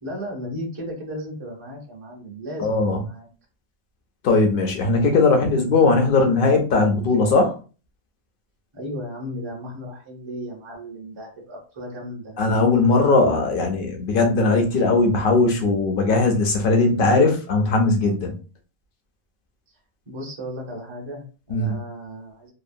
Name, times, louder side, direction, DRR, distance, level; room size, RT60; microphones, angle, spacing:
voice 1, 0.0-3.3 8.7-12.4 20.1-22.5, equal, 35° right, -1 dB, 0.4 m, -35 dB
voice 2, 2.6-3.0 4.2-7.5 12.4-18.3 21.5-21.7, left 3 dB, 60° left, 3 dB, 0.6 m, -19 dB
2.8 x 2.0 x 2.5 m, 0.35 s
omnidirectional pair, 1.5 m